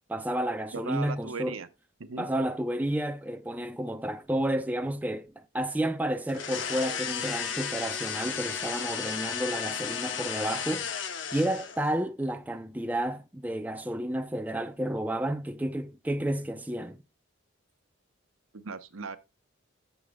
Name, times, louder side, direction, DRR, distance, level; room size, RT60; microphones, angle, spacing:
voice 1, 0.1-1.6 2.2-10.9 11.3-17.0, right 1 dB, 10° right, 0.5 m, -31 dB
voice 2, 0.7-1.7 2.0-2.3 18.5-19.2, right 4 dB, 85° right, 0.9 m, -37 dB
sound 1, 6.3-11.9, left 7 dB, 60° left, 0.9 m, -34 dB
11.5 x 7.2 x 2.3 m
head